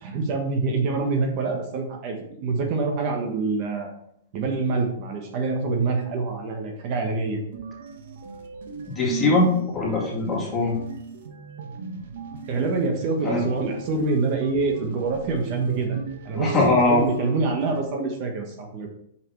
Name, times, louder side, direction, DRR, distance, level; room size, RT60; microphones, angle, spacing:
voice 1, 0.0-3.9 4.3-7.4 12.5-16.0 16.2-16.6 16.8-18.9, right 3 dB, 45° right, 2 dB, 1.3 m, -26 dB
sound 1, 7.5-17.8, right 5 dB, 70° right, 1.1 m, -36 dB
voice 2, 9.0-10.7 13.2-13.4 16.4-17.0, left 2 dB, 20° left, -4 dB, 2.5 m, -21 dB
5.8 x 4.9 x 4.6 m, 0.71 s
hypercardioid pair, 135°, 0 cm